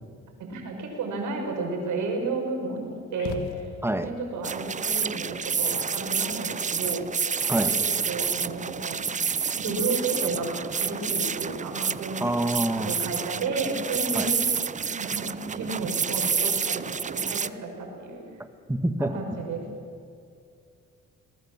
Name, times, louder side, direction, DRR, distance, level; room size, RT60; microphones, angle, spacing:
voice 1, 0.4-7.0 7.5-9.0 9.5-12.4 12.8-14.3 14.8-18.4 19.0-19.7, right 3 dB, 75° right, 2 dB, 5.8 m, -32 dB
sound 1, 3.2-4.2, left 7 dB, 90° left, 1.7 m, -37 dB
sound 2, 4.4-17.5, right 6 dB, 25° right, 0.6 m, -29 dB
voice 2, 12.2-12.9 14.2-14.3 18.7-19.1, right 1 dB, 10° right, 9 dB, 1.7 m, -26 dB
22.5 x 20.5 x 7.4 m, 2.4 s
cardioid pair, 90°, 30 cm